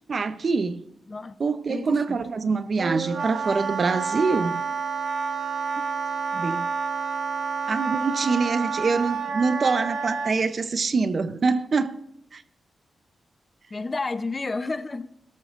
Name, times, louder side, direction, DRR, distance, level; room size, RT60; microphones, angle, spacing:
voice 1, 0.1-0.8 1.4-4.6 6.3-6.7 7.7-12.0 12.3-12.4, right 4 dB, 50° right, 0.6 m, -25 dB
voice 2, 1.7-2.2 13.7-15.0, left 3 dB, 30° left, 0.6 m, -31 dB
Wind instrument woodwind instrument, 2.8-10.3, right 5 dB, 65° right, 1.2 m, -29 dB
19.0 x 13.0 x 2.5 m
wide cardioid pair, 105°, 0 cm